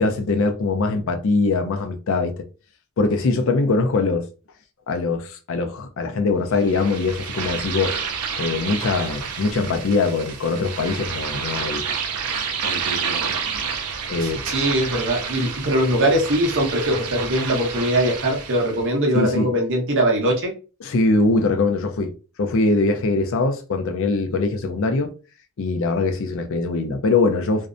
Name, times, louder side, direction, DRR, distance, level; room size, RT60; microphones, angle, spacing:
voice 1, 0.0-2.4 3.0-4.3 4.9-8.0 8.4-11.8 12.3-12.5 14.1-14.4 19.1-19.5 20.8-22.1 22.4-25.1 25.6-27.7, left 3 dB, 60° left, 0.4 m, -22 dB
sound 1, 6.6-18.8, right 6 dB, 90° right, 0.5 m, -29 dB
voice 2, 14.2-20.5, right 1 dB, 60° right, 0.9 m, -21 dB
2.6 x 2.1 x 2.5 m
head